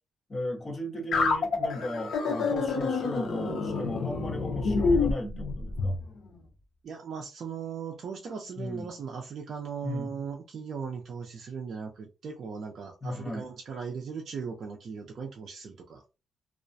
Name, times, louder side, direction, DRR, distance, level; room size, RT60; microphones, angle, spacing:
voice 1, 0.3-6.0 8.6-8.9 9.8-10.1 13.0-13.4, left 1 dB, 20° left, 0.6 m, -36 dB
sound 1, 1.1-6.0, left 4 dB, 60° left, 0.6 m, -27 dB
voice 2, 6.8-16.0, right 6 dB, 50° right, 0.4 m, -38 dB
2.3 x 2.0 x 2.6 m
cardioid pair, 170°, 0 cm